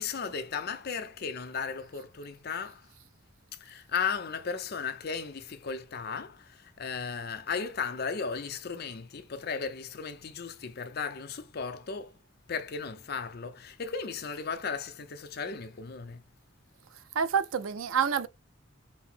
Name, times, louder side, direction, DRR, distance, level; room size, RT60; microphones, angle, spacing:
voice 1, 0.0-2.9 3.6-12.1 12.5-16.2, left 5 dB, 50° left, 0.6 m, -35 dB
voice 2, 17.1-18.3, right 7 dB, 85° right, 0.5 m, -27 dB
5.5 x 2.0 x 4.3 m
head